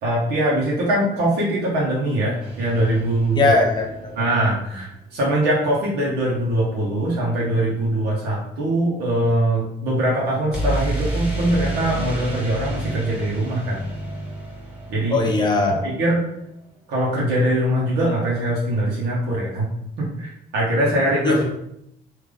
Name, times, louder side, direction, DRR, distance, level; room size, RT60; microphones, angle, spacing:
voice 1, 0.0-3.5 4.2-13.8 14.9-15.2 15.7-16.2 16.9-19.7 20.0-21.4, right 1 dB, 75° right, -5 dB, 1.1 m, -22 dB
sound 1, 2.4-4.4 10.5-16.3, right 1 dB, 5° right, 1.3 m, -30 dB
voice 2, 3.3-4.2 15.1-15.9 21.2-21.4, left 3 dB, 25° left, 0 dB, 0.9 m, -20 dB
3.4 x 2.7 x 3.7 m, 0.77 s
cardioid pair, 110°, 17 cm